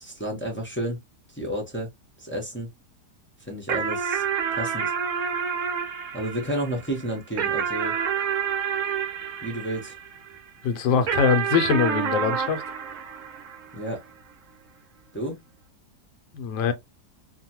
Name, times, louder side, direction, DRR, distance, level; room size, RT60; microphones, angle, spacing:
voice 1, 0.0-1.0 1.3-1.9 2.2-2.7 3.4-4.2 4.5-4.9 6.1-7.9 9.4-9.9 13.7-14.0 15.1-15.4, right 1 dB, 15° left, 0.5 m, -31 dB
sound 1, 3.7-10.4 11.1-13.9, right 7 dB, 60° right, 0.9 m, -28 dB
voice 2, 10.6-12.6 16.3-16.7, left 6 dB, 80° left, 1.2 m, -23 dB
2.9 x 2.2 x 2.8 m
omnidirectional pair, 1.8 m